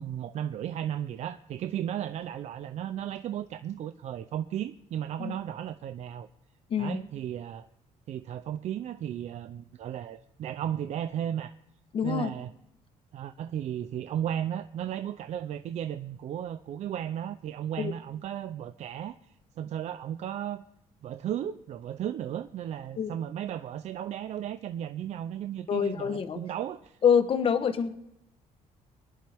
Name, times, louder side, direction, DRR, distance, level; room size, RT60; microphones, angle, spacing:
voice 1, 0.0-6.3 6.8-7.7 8.1-11.5 12.0-12.5 13.1-20.6 21.0-27.0, right 10 dB, 60° right, 10 dB, 0.6 m, -35 dB
voice 2, 11.9-12.3 17.8-17.9 23.0-23.1 25.7-26.4 27.0-27.9, left 7 dB, 45° left, 10 dB, 1.1 m, -26 dB
24.5 x 10.5 x 3.5 m, 0.85 s
cardioid pair, 140°, 13 cm